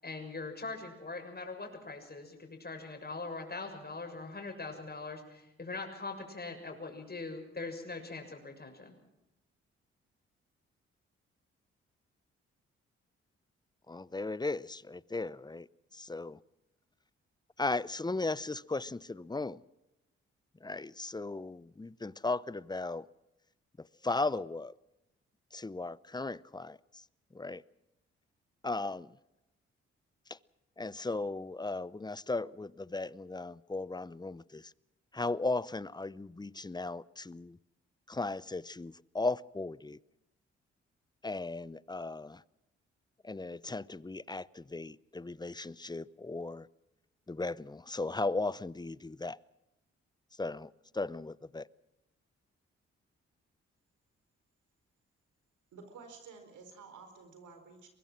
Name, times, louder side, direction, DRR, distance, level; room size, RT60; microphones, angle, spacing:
voice 1, 0.0-8.9, left 3 dB, 30° left, 6.7 m, -42 dB
voice 2, 13.9-15.7 15.9-16.4 17.6-19.6 20.6-23.1 23.8-24.7 25.5-27.0 27.3-27.6 28.6-29.2 30.3-30.4 30.8-34.7 35.1-37.6 38.1-40.0 41.2-42.4 43.2-46.7 47.3-49.4 50.4-51.7, left 3 dB, 15° left, 0.7 m, -36 dB
voice 3, 55.7-57.9, right 5 dB, 75° right, 4.4 m, -51 dB
23.5 x 21.0 x 6.4 m
hypercardioid pair, 40°, 30 cm